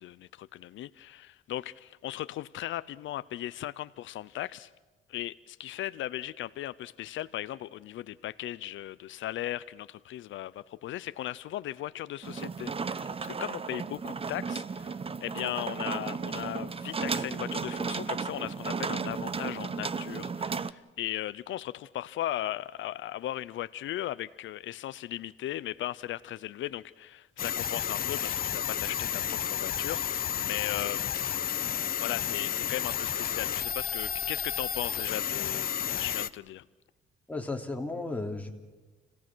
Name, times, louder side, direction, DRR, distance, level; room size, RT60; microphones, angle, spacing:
voice 1, 0.0-4.7 5.1-31.1 32.0-36.7, left 13 dB, 75° left, 16 dB, 0.6 m, -37 dB
sound 1, 12.2-20.7, right 5 dB, 30° right, 0.8 m, -34 dB
sound 2, 27.4-36.3, left 9 dB, 50° left, 0.9 m, -31 dB
voice 2, 37.3-38.6, left 2 dB, 5° left, 2 dB, 3.0 m, -34 dB
29.5 x 17.5 x 6.2 m, 1.3 s
cardioid pair, 90°, 20 cm